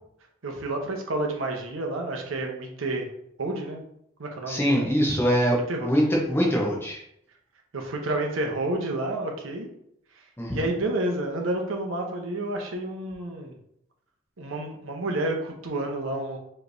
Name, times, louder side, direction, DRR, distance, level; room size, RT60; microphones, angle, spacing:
voice 1, 0.4-3.1 3.4-3.8 4.2-4.9 5.7-5.9 7.7-9.7 10.5-13.6 14.4-16.4, right 2 dB, 70° right, 2 dB, 0.8 m, -30 dB
voice 2, 4.5-7.0 10.4-10.7, equal, 10° left, -2 dB, 0.8 m, -23 dB
4.9 x 3.2 x 2.6 m, 0.75 s
head